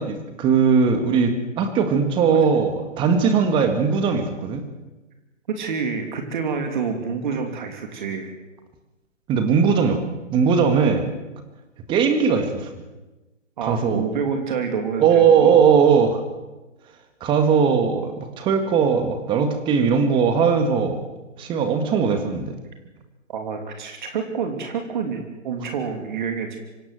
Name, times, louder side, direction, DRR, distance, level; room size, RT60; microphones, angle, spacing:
voice 1, 0.0-2.7 3.0-4.6 9.3-10.0 10.3-11.0 11.9-12.7 13.6-14.1 15.0-16.2 17.2-21.0 21.4-22.6, right 6 dB, 15° right, 7 dB, 2.0 m, -19 dB
voice 2, 5.5-8.3 13.6-15.6 23.3-26.6, right 6 dB, 40° right, 4 dB, 3.1 m, -28 dB
25.0 x 17.5 x 7.8 m, 1.1 s
figure-of-eight pair, 145°, 38 cm